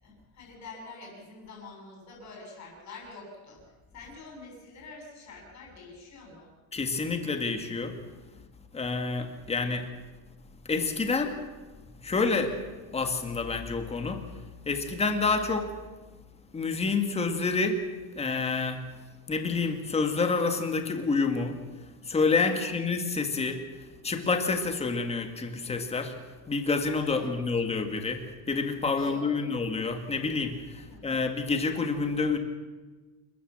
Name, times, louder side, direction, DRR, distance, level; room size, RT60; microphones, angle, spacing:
voice 1, 0.0-3.6 3.9-6.5 22.4-22.8 27.0-27.3 28.9-29.5 30.8-31.1, left 3 dB, 35° left, -1 dB, 7.3 m, -46 dB
voice 2, 6.7-8.0 8.7-9.8 10.7-11.3 12.0-12.5 12.9-14.2 14.7-15.7 16.5-17.8 18.1-18.8 19.3-21.6 22.1-23.6 24.0-26.1 26.5-28.2 28.5-32.4, left 4 dB, 15° left, 6 dB, 1.8 m, -28 dB
28.5 x 14.0 x 7.4 m, 1.3 s
cardioid pair, 175°, 45 cm